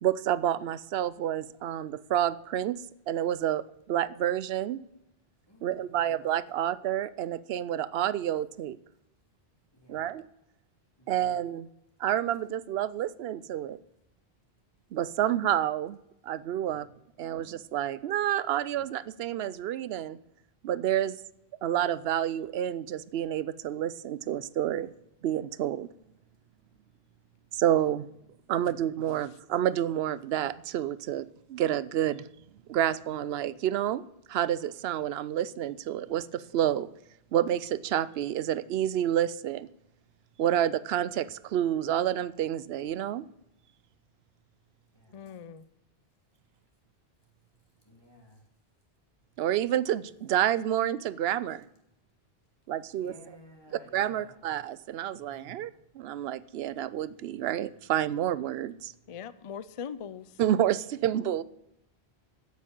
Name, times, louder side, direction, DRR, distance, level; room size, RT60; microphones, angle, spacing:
voice 1, 0.0-2.8 3.1-4.8 5.6-8.8 9.9-10.2 11.1-11.7 12.0-13.8 14.9-16.0 16.2-16.9 17.2-20.2 20.6-21.2 21.6-24.9 25.2-25.9 27.5-28.1 28.5-32.3 32.7-34.0 34.3-36.9 37.3-39.7 40.4-43.3 49.4-51.6 52.7-53.1 53.9-58.9 60.4-61.4, right 11 dB, 75° right, 18 dB, 0.8 m, -29 dB
voice 2, 5.5-6.1 9.7-10.1 11.0-11.3 44.9-45.2 47.8-48.4 53.0-54.4 55.1-55.6, equal, 25° left, 0 dB, 2.7 m, -55 dB
voice 3, 45.1-45.7 59.1-60.3, left 7 dB, 40° left, 15 dB, 0.5 m, -40 dB
8.4 x 8.2 x 8.9 m, 0.82 s
omnidirectional pair, 1.0 m